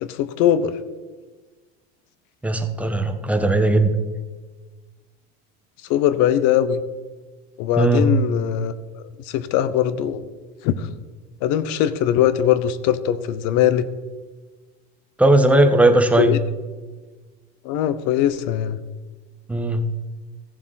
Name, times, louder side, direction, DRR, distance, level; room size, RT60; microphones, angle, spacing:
voice 1, 0.0-0.7 5.9-6.8 7.6-10.2 10.6-10.9 11.4-13.9 16.2-16.4 17.6-18.8, left 10 dB, 60° left, 14 dB, 0.9 m, -21 dB
voice 2, 2.4-3.9 7.8-8.1 15.2-16.4 19.5-19.9, right 1 dB, 5° right, 5 dB, 1.1 m, -17 dB
15.5 x 7.2 x 4.1 m, 1.3 s
supercardioid pair, 105°, 35 cm